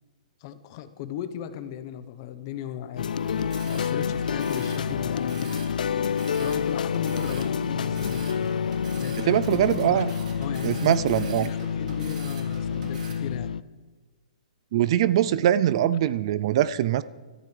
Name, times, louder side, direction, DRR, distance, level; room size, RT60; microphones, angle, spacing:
voice 1, 0.4-3.1 3.6-5.5 6.4-8.3 9.0-13.5, left 10 dB, 35° left, 12 dB, 0.9 m, -37 dB
sound 1, 3.0-13.6, left 7 dB, 90° left, 0.4 m, -28 dB
sound 2, 3.2-13.1, right 4 dB, 70° right, 3.5 m, -44 dB
voice 2, 9.2-10.1 10.6-11.5 14.7-17.0, right 11 dB, 40° right, 16 dB, 0.4 m, -22 dB
24.5 x 14.0 x 3.3 m, 1.4 s
hypercardioid pair, 165°, 4 cm